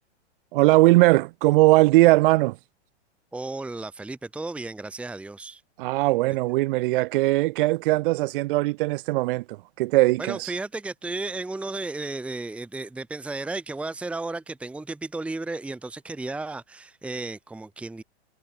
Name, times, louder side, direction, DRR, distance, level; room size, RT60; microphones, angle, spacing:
voice 1, 0.5-2.6 5.8-10.5, right 20 dB, 50° right, 2.1 m, -20 dB
voice 2, 3.3-5.6 10.2-18.0, right 3 dB, 5° right, 1.3 m, -34 dB
hypercardioid pair, 145°, 34 cm